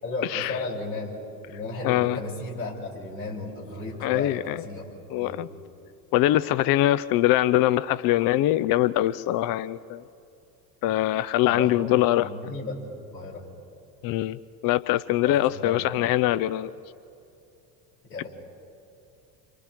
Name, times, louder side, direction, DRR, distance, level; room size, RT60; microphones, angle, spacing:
voice 1, 0.0-1.2 1.5-5.6 11.4-11.9 12.2-13.4 15.2-16.0 18.0-18.3, left 2 dB, 90° left, -4 dB, 5.9 m, -35 dB
voice 2, 1.8-2.2 4.0-4.6 5.1-5.5 6.1-10.0 10.8-12.3 14.0-14.4 14.6-16.7, left 14 dB, 45° left, 17 dB, 0.6 m, -23 dB
29.5 x 26.5 x 3.6 m, 2.8 s
hypercardioid pair, 70°, 49 cm